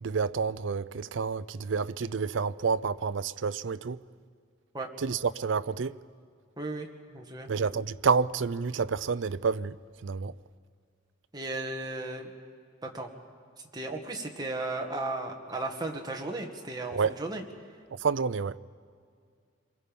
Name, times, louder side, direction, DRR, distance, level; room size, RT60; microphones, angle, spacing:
voice 1, 0.0-4.0 5.0-6.0 7.5-9.8 10.0-10.3 16.9-17.1 18.0-18.6, right 5 dB, 65° right, 0.5 m, -29 dB
voice 2, 6.6-7.5 11.3-12.3 12.8-13.1 13.7-17.4, right 2 dB, 20° right, 1.8 m, -35 dB
28.5 x 22.5 x 5.4 m
head